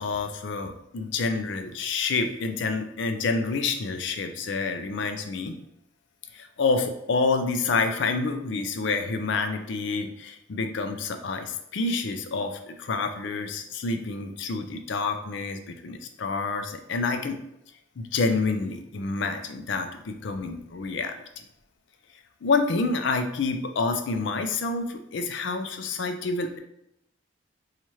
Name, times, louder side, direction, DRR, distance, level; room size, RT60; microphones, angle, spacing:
voice 1, 0.0-5.6 6.3-17.4 18.0-21.2 22.4-26.6, left 4 dB, 60° left, 7 dB, 0.4 m, -28 dB
3.0 x 2.4 x 4.2 m, 0.79 s
head